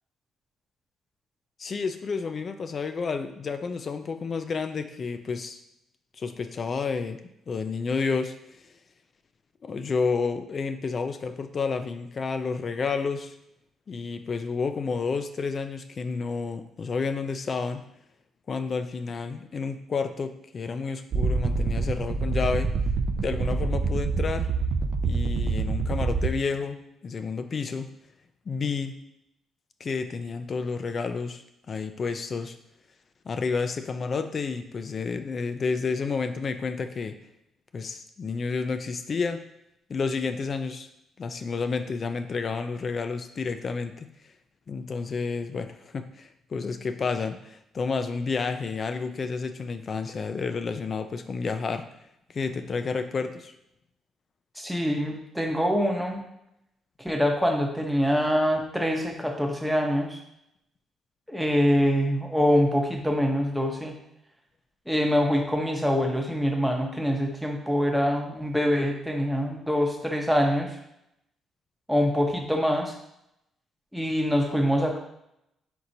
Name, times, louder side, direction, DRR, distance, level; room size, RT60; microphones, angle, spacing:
voice 1, 1.6-5.6 6.2-7.2 7.5-8.3 9.6-13.3 13.9-17.8 18.5-22.7 23.2-24.5 25.0-27.9 28.5-29.0 29.8-32.6 33.3-37.2 37.7-39.4 39.9-40.9 41.2-44.1 44.7-51.8 52.3-53.5, left 4 dB, 45° left, 9 dB, 0.4 m, -30 dB
sound 1, 21.1-26.3, right 4 dB, 60° right, 0.4 m, -26 dB
voice 2, 54.6-56.2 57.0-60.2 61.3-63.9 64.9-70.7 71.9-72.9 73.9-75.0, equal, ahead, 1 dB, 0.8 m, -24 dB
4.5 x 3.9 x 2.7 m, 0.80 s
cardioid pair, 90°, 0 cm